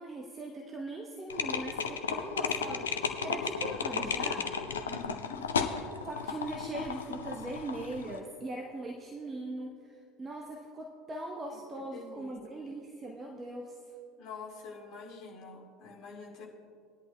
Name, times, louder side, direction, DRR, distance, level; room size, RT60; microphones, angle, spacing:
voice 1, 0.0-4.5 6.0-13.8, right 2 dB, 20° right, 1 dB, 0.9 m, -40 dB
sound 1, 1.3-8.2, left 6 dB, 75° left, 0.6 m, -34 dB
voice 2, 4.8-5.4 11.5-11.6 11.9-12.7 14.2-16.5, left 4 dB, 40° left, -3 dB, 2.5 m, -46 dB
19.5 x 11.0 x 2.2 m, 2.4 s
figure-of-eight pair, 70°, 0 cm